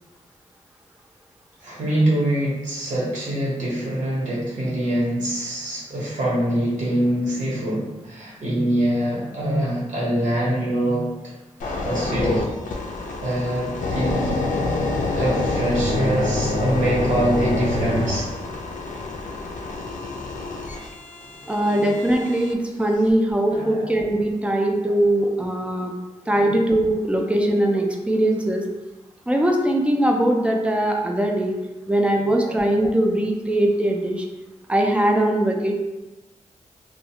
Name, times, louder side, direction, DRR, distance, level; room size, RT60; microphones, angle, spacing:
voice 1, 1.6-11.1 11.6-12.4 13.2-14.4 15.2-18.3 21.7-21.8 23.5-23.9 24.9-25.0 26.3-26.5 32.4-32.6, right 1 dB, 70° right, -5 dB, 1.0 m, -24 dB
sound 1, 11.6-22.5 23.1-23.3, left 2 dB, 80° left, 0.4 m, -27 dB
voice 2, 21.5-25.9 26.3-28.6 29.3-31.6 31.9-34.2 34.7-35.7, right 1 dB, 10° right, 1 dB, 0.3 m, -21 dB
2.5 x 2.3 x 2.8 m, 1.0 s
wide cardioid pair, 130°, 13 cm